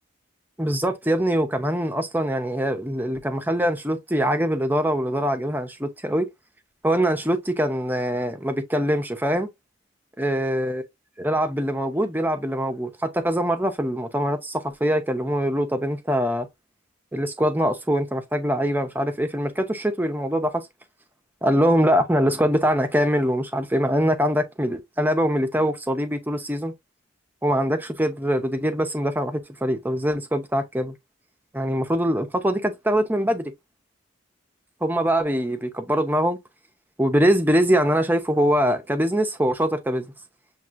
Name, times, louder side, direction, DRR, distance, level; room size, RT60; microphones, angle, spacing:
voice 1, 0.6-6.3 6.8-9.5 10.2-10.8 11.2-16.5 17.1-20.7 21.4-26.7 27.4-30.9 31.5-33.5 34.8-36.4 37.0-40.1, equal, 10° right, 0.7 m, -23 dB
7.6 x 2.6 x 2.5 m
head